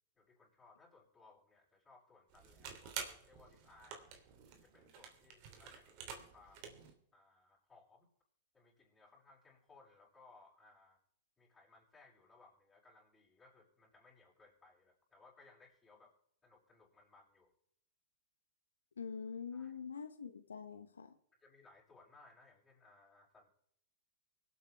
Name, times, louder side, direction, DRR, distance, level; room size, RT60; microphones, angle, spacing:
voice 1, 0.1-4.0 4.5-6.8 7.1-8.1 8.5-11.0 11.4-16.1 16.4-17.5 19.5-19.7 21.4-23.5, left 3 dB, 10° left, -5 dB, 6.9 m, -64 dB
sound 1, 2.3-6.9, right 6 dB, 50° right, 2.9 m, -49 dB
voice 2, 19.0-21.1, left 6 dB, 90° left, 10 dB, 0.9 m, -45 dB
24.5 x 8.6 x 3.4 m, 0.69 s
hypercardioid pair, 115°, 0 cm